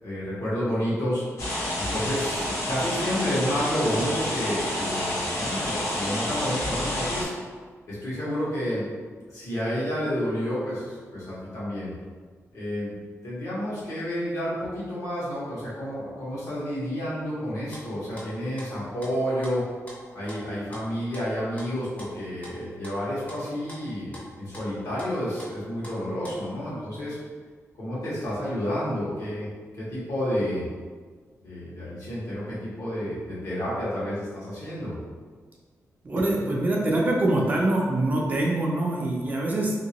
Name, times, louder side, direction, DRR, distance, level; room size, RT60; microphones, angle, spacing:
voice 1, 0.0-1.2 1.7-7.3 7.9-8.9 9.3-11.9 12.5-12.9 13.2-19.6 20.1-27.2 27.8-29.5 29.7-30.6 31.4-35.0, equal, 75° left, -9 dB, 1.3 m, -30 dB
sound 1, 1.4-7.2, left 1 dB, 60° left, 0.9 m, -29 dB
sound 2, 17.5-26.6, equal, 25° left, 0.7 m, -45 dB
voice 2, 36.0-39.7, right 1 dB, 30° right, -2 dB, 0.4 m, -24 dB
2.9 x 2.9 x 2.9 m, 1.5 s
wide cardioid pair, 180°, 6 cm